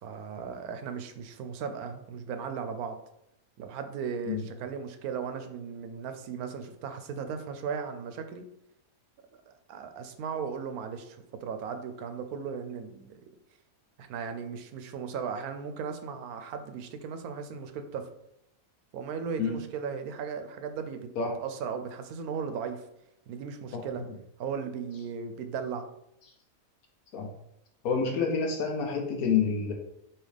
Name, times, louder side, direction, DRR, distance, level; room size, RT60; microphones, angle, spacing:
voice 1, 0.0-3.0 3.6-8.4 9.5-13.2 14.0-18.1 18.9-21.1 21.4-22.9 23.3-24.0 24.4-25.9, right 6 dB, 80° right, 8 dB, 1.1 m, -36 dB
voice 2, 27.8-29.7, left 5 dB, 75° left, 2 dB, 1.1 m, -28 dB
5.6 x 2.8 x 3.4 m, 0.80 s
omnidirectional pair, 1.6 m